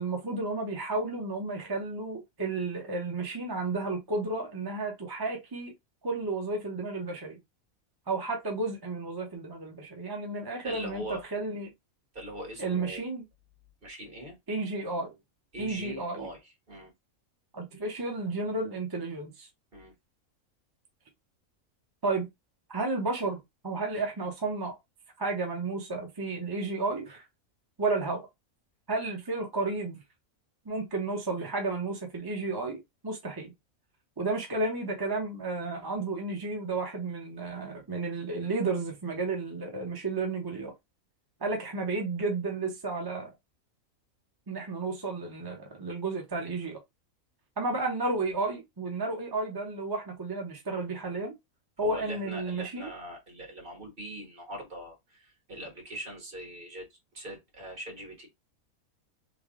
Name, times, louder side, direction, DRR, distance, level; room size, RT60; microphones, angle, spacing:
voice 1, 0.0-5.7 6.0-7.4 8.1-11.7 12.6-13.2 14.5-15.2 15.6-16.3 17.5-19.5 22.0-22.3 22.7-23.4 23.6-24.7 25.2-27.3 27.8-28.3 28.9-30.0 30.7-33.5 34.2-40.7 41.4-43.3 44.5-46.8 47.6-51.3 51.8-52.9, right 3 dB, 25° right, 0.5 m, -32 dB
voice 2, 10.6-11.2 12.1-13.1 13.8-14.4 15.5-16.9 19.7-19.9 51.8-58.3, right 1 dB, 40° right, 1.5 m, -41 dB
3.3 x 2.3 x 3.6 m
omnidirectional pair, 1.4 m